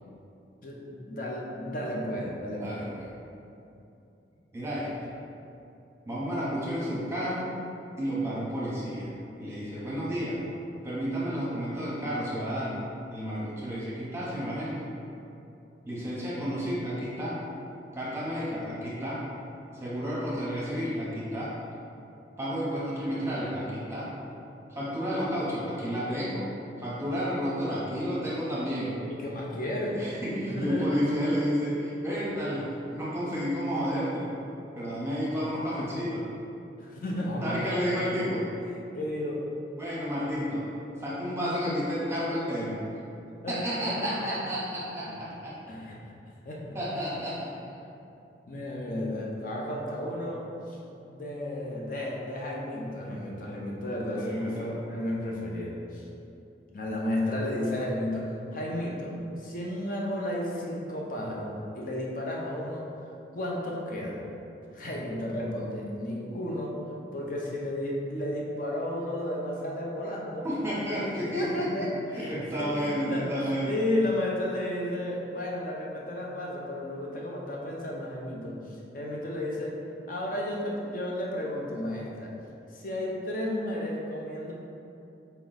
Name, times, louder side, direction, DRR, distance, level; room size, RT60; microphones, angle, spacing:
voice 1, 0.6-2.9 29.0-30.0 30.4-30.9 36.8-38.2 38.9-39.4 43.4-43.6 43.9-44.4 45.0-45.4 45.7-46.0 46.4-46.8 48.5-50.8 51.1-56.1 56.7-64.2 64.7-66.7 67.1-70.4 71.3-73.3 73.6-79.8 80.1-82.3 82.7-84.5, left 1 dB, 50° left, -2 dB, 0.7 m, -33 dB
voice 2, 2.6-3.0 4.5-4.9 6.1-7.5 8.0-9.1 9.4-10.4 10.8-12.8 13.1-14.9 15.9-17.4 17.9-19.2 19.8-21.5 22.4-24.1 24.7-26.5 26.8-28.9 29.9-34.3 34.8-36.3 37.4-38.5 39.8-40.7 41.0-42.8 43.5-45.5 46.7-47.5 54.2-54.7 70.4-71.9 72.1-73.8, equal, 15° right, -8 dB, 0.8 m, -31 dB
4.4 x 3.0 x 3.9 m, 2.7 s
head